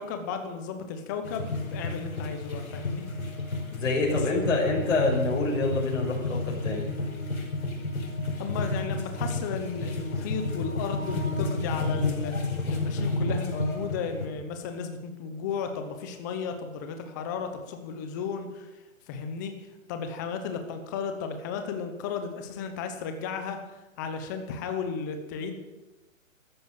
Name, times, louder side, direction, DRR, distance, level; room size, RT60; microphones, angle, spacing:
voice 1, 0.0-3.1 4.1-4.4 8.4-12.4 12.7-18.7 19.1-19.5 19.9-23.6 24.0-25.5, left 6 dB, 15° left, 7 dB, 1.0 m, -34 dB
sound 1, 1.2-14.3, left 2 dB, 90° left, 4.9 m, -31 dB
voice 2, 3.7-6.9, left 3 dB, 60° left, -2 dB, 5.9 m, -26 dB
13.5 x 13.5 x 7.7 m, 1.1 s
hypercardioid pair, 165°, 41 cm